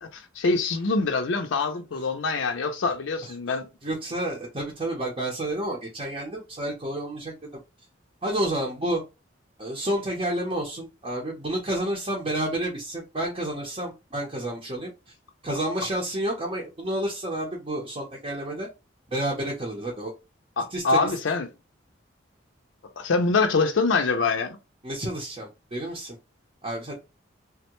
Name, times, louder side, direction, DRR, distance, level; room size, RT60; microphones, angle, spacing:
voice 1, 0.0-3.7 20.6-21.5 23.0-24.6, left 4 dB, 80° left, 0.5 m, -24 dB
voice 2, 3.8-7.5 8.2-9.0 9.6-14.9 15.4-18.7 19.1-20.1 20.7-21.1 24.8-26.2 26.6-26.9, right 1 dB, 30° right, 0.7 m, -30 dB
3.4 x 2.2 x 2.9 m
head